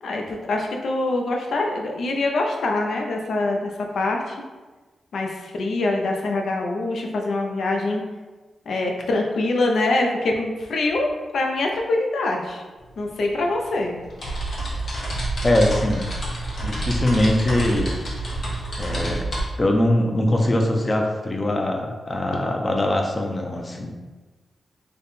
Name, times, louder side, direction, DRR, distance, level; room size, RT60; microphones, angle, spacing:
voice 1, 0.0-4.4 5.1-8.0 8.7-11.1 11.3-12.6 13.0-14.0, left 2 dB, 75° left, 1 dB, 0.5 m, -24 dB
sound 1, 12.8-12.9 13.2-19.4, right 1 dB, 60° left, 1.1 m, -28 dB
voice 2, 15.4-16.1 16.6-17.9 18.8-19.3 19.6-24.0, left 1 dB, 30° left, 2 dB, 0.5 m, -22 dB
3.4 x 2.2 x 4.1 m, 1.2 s
wide cardioid pair, 100°, 0 cm